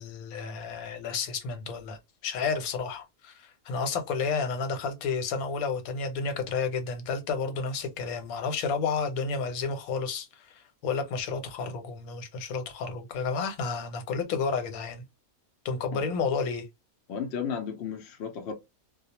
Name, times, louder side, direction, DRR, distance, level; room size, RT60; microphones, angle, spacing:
voice 1, 0.0-10.5 10.8-15.0 15.6-16.7, left 5 dB, 80° left, 1.1 m, -31 dB
voice 2, 17.1-18.5, left 7 dB, 65° left, 0.7 m, -34 dB
2.3 x 2.1 x 2.8 m
omnidirectional pair, 1.5 m